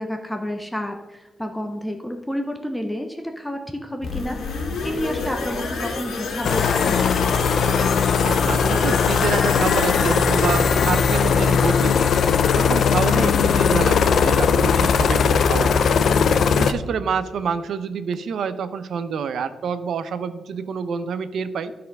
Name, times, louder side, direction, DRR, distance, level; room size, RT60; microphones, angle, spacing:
voice 1, 0.0-4.4 4.8-7.0, equal, 5° left, 4 dB, 0.5 m, -30 dB
sound 1, 4.0-13.7 14.1-14.2, left 4 dB, 85° left, 1.6 m, -30 dB
sound 2, 6.4-16.7, left 6 dB, 60° left, 0.4 m, -19 dB
voice 2, 8.1-12.1 12.5-15.9 16.6-21.7, right 6 dB, 70° right, 12 dB, 0.5 m, -27 dB
12.5 x 4.3 x 5.2 m, 1.2 s
wide cardioid pair, 170°, 0 cm